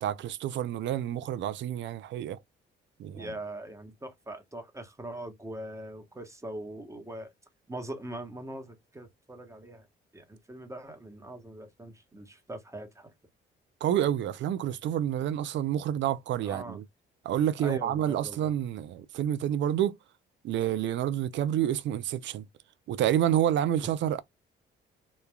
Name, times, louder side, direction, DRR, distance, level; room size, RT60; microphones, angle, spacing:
voice 1, 0.0-2.4 3.0-3.3 13.8-16.8 17.2-20.0 20.4-22.4 22.9-24.2, right 11 dB, 65° right, 0.4 m, -28 dB
voice 2, 3.1-7.3 7.7-9.9 10.1-13.1 16.4-16.8 17.6-18.5, right 1 dB, 15° right, 1.0 m, -41 dB
3.1 x 2.3 x 2.2 m
cardioid pair, 90°, 20 cm